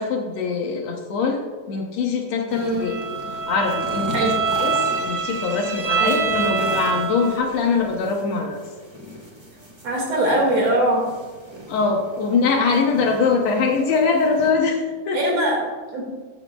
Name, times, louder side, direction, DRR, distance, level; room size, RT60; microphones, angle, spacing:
voice 1, 0.0-3.0 3.5-4.3 4.6-8.7 11.7-15.2, left 4 dB, 70° left, 1 dB, 2.0 m, -22 dB
sound 1, 2.5-14.5, equal, 25° right, 0.5 m, -39 dB
voice 2, 2.5-2.9 4.1-4.3 6.0-6.2 9.8-11.0 15.1-16.0, right 1 dB, 55° right, -1 dB, 3.1 m, -22 dB
Bowed string instrument, 2.8-7.5, right 5 dB, 75° right, 0.8 m, -25 dB
13.0 x 9.0 x 2.3 m, 1.5 s
omnidirectional pair, 3.4 m